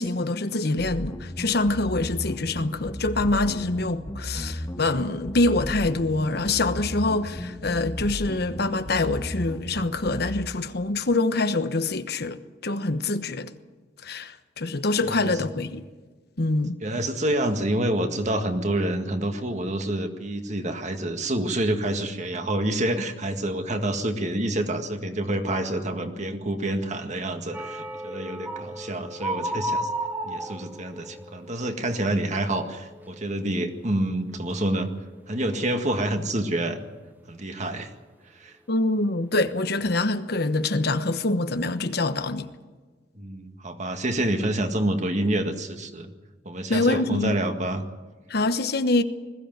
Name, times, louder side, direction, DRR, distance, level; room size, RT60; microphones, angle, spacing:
voice 1, 0.0-13.5 14.0-15.8 16.4-16.8 38.7-42.5 46.7-47.4 48.3-49.0, left 2 dB, 55° left, 1.1 m, -25 dB
sound 1, 0.8-10.4, equal, 20° left, 1.6 m, -35 dB
voice 2, 15.0-15.4 16.8-29.9 30.2-34.9 35.3-36.8 37.3-37.9 38.4-38.6 43.2-46.1 46.5-47.8, right 1 dB, 40° right, 1.9 m, -27 dB
sound 2, 27.5-33.3 33.6-34.0 34.4-34.6, right 1 dB, 10° right, 1.1 m, -34 dB
21.0 x 15.5 x 9.3 m
head